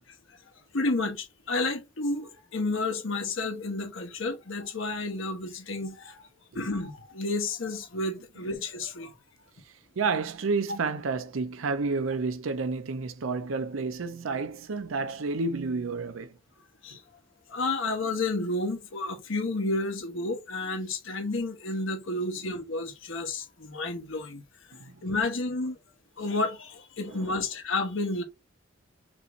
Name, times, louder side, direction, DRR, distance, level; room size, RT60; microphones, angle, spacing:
voice 1, 0.7-6.3 6.5-9.1 16.8-17.0 17.5-24.4 25.0-25.8 26.2-28.2, left 2 dB, 75° left, 1.1 m, -31 dB
voice 2, 10.0-16.3 24.8-25.0 27.1-27.4, right 4 dB, 90° right, 0.6 m, -30 dB
5.3 x 2.6 x 3.1 m
head